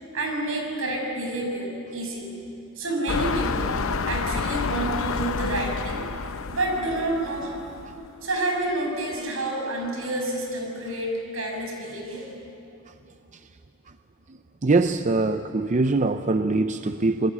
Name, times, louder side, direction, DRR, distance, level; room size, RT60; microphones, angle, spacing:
voice 1, 0.1-2.3 2.8-3.8 4.1-6.0 6.5-7.6 8.2-12.3, right 1 dB, 75° right, 1 dB, 6.1 m, -29 dB
sound 1, 3.1-8.1 8.7-8.8, left 4 dB, 80° left, 0.7 m, -29 dB
voice 2, 14.6-17.3, right 3 dB, 35° right, 9 dB, 0.6 m, -22 dB
28.5 x 21.5 x 8.4 m, 2.7 s
head